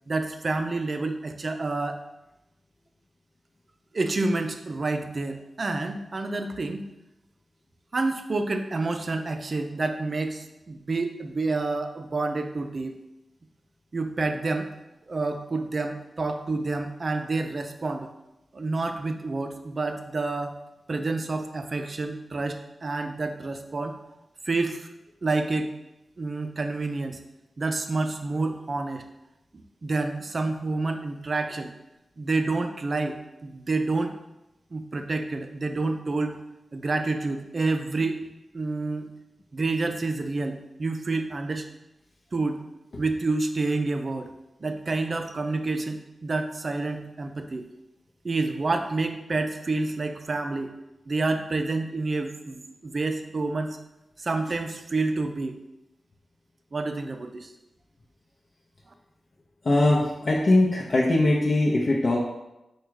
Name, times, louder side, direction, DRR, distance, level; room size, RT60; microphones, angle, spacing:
voice 1, 0.1-2.0 3.9-6.9 7.9-12.9 13.9-14.7 15.1-18.1 18.5-20.6 20.9-23.9 24.5-24.9 25.2-25.7 26.2-27.2 27.6-29.1 29.8-31.7 32.2-34.1 34.7-36.4 36.7-38.2 38.5-39.1 39.5-41.7 42.3-42.6 43.0-44.3 44.6-47.7 48.2-50.7 51.1-53.8 54.2-55.6 56.7-57.5, right 3 dB, 50° right, 6 dB, 0.4 m, -28 dB
voice 2, 59.6-62.2, left 2 dB, 55° left, -3 dB, 0.6 m, -21 dB
4.8 x 2.3 x 4.6 m, 0.93 s
cardioid pair, 65°, 0 cm